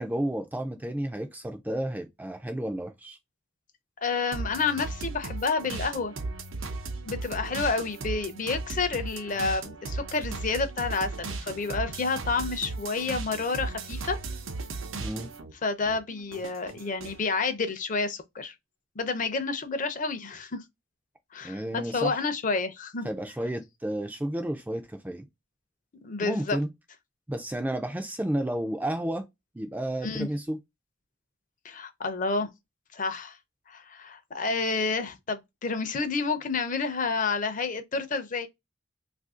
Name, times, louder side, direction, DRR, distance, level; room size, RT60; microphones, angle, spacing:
voice 1, 0.0-3.2 15.0-15.3 21.4-22.2 23.0-25.2 26.2-26.7 27.3-29.3 29.5-30.6, right 1 dB, 10° right, 0.3 m, -31 dB
voice 2, 4.0-6.1 7.0-14.2 15.6-18.5 19.0-20.6 21.3-23.1 26.0-26.6 30.0-30.3 31.6-32.5 32.9-33.4 33.7-38.5, left 4 dB, 40° left, 0.5 m, -29 dB
sound 1, 4.3-15.5 15.8-17.2, right 3 dB, 80° right, 0.7 m, -36 dB
2.7 x 2.5 x 3.6 m
head